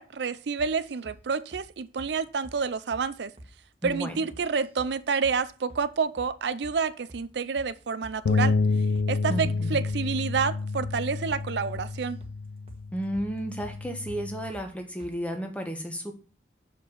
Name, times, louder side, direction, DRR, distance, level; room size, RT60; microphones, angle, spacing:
voice 1, 0.0-3.3 3.8-8.6 9.1-12.2, right 5 dB, 70° right, 0.5 m, -29 dB
sound 1, 0.6-1.2 1.5-1.7 2.0-2.1 2.4-2.6 2.9-3.1 3.4-3.5 3.8-4.0 4.3-4.9 5.2-5.4 5.7-5.9 6.2-6.3 6.6-6.8 7.1-7.3 7.6-7.7 8.0-8.7 9.0-9.1 9.4-9.6 9.9-10.1 10.3-10.5 10.8-11.0 11.3-11.4 11.7-12.4 12.7-12.8 13.1-13.3 13.6-13.8 14.1-14.2 14.5-14.7 15.0-15.2, equal, 30° right, 1.3 m, -47 dB
voice 2, 3.8-4.2 9.3-9.8 12.9-16.1, equal, 5° left, 1.1 m, -33 dB
sound 2, 8.3-14.5, left 3 dB, 80° left, 0.4 m, -29 dB
6.7 x 5.1 x 5.2 m
head